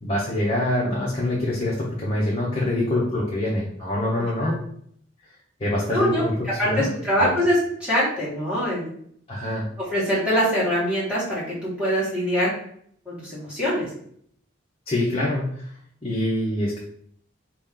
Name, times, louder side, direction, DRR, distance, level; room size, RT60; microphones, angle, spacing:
voice 1, 0.0-4.6 5.6-6.9 7.2-7.3 9.3-9.6 14.9-15.7 16.0-16.8, left 1 dB, 30° left, -6 dB, 0.9 m, -25 dB
voice 2, 4.1-4.6 5.9-8.9 9.8-12.5 13.1-13.9, equal, 5° right, -8 dB, 1.9 m, -24 dB
4.4 x 3.1 x 3.8 m, 0.65 s
head